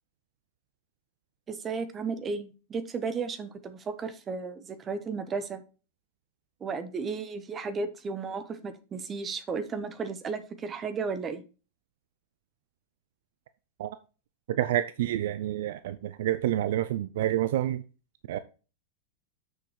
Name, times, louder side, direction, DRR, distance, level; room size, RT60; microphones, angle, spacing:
voice 1, 1.5-5.6 6.6-11.4, right 4 dB, 25° right, 1.2 m, -34 dB
voice 2, 14.5-17.8 18.3-18.4, right 13 dB, 55° right, 0.4 m, -28 dB
6.9 x 6.5 x 4.5 m
figure-of-eight pair, 90°, 0 cm